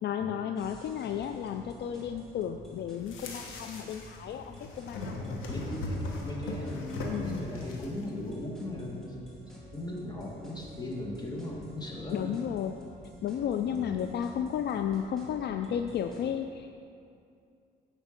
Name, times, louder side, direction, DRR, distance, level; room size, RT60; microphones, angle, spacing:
voice 1, 0.0-5.4 7.1-7.4 12.1-12.8 13.2-16.9, left 9 dB, 60° left, 6 dB, 0.4 m, -33 dB
sound 1, 0.5-16.3, equal, 5° left, 2.2 m, -51 dB
sound 2, 3.0-4.2 4.4-8.0, left 2 dB, 90° left, 1.2 m, -38 dB
voice 2, 5.0-9.2 9.7-12.3 13.5-14.1, left 1 dB, 20° left, -2 dB, 1.8 m, -38 dB
9.6 x 5.1 x 5.2 m, 2.5 s
cardioid pair, 90°, 20 cm